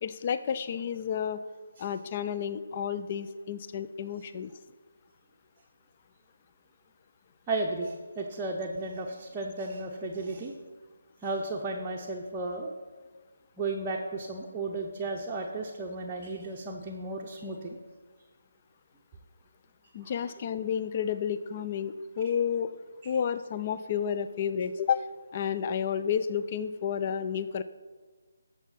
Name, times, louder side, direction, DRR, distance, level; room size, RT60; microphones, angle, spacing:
voice 1, 0.0-1.4 1.8-4.5 19.9-22.7 23.0-27.6, left 8 dB, 30° left, 12 dB, 0.4 m, -31 dB
voice 2, 7.5-10.5 11.2-12.7 13.6-17.8 22.2-22.3 23.0-23.1, right 2 dB, 15° right, -2 dB, 0.8 m, -34 dB
13.0 x 6.9 x 4.1 m, 1.4 s
figure-of-eight pair, 150°, 0 cm